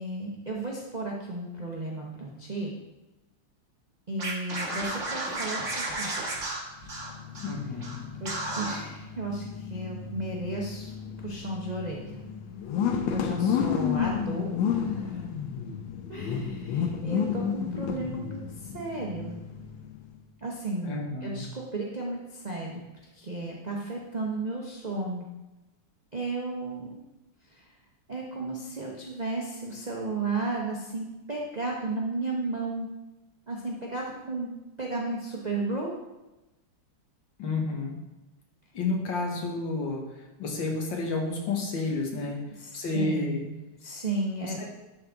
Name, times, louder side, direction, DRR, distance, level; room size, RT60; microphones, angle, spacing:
voice 1, 0.0-2.7 4.1-6.1 8.2-9.4 9.7-10.9 11.2-12.2 13.1-15.2 16.1-18.4 18.7-19.4 20.4-22.8 23.2-25.3 26.1-27.0 28.1-32.9 33.5-34.5 34.8-35.9 42.6-43.5 43.8-44.6, right 2 dB, 80° right, -2 dB, 0.3 m, -34 dB
Scratching (performance technique), 4.2-7.5 7.8-8.0 8.2-8.8, right 2 dB, 40° right, 1.6 m, -33 dB
sound 1, 6.8-20.2, left 7 dB, 90° left, 1.4 m, -32 dB
voice 2, 7.4-8.1 20.8-21.4 37.4-38.0 38.7-40.0 40.4-42.4 42.7-43.5 44.4-44.5, left 3 dB, 70° left, 0 dB, 1.8 m, -30 dB
11.5 x 3.8 x 3.5 m, 1.0 s
omnidirectional pair, 2.2 m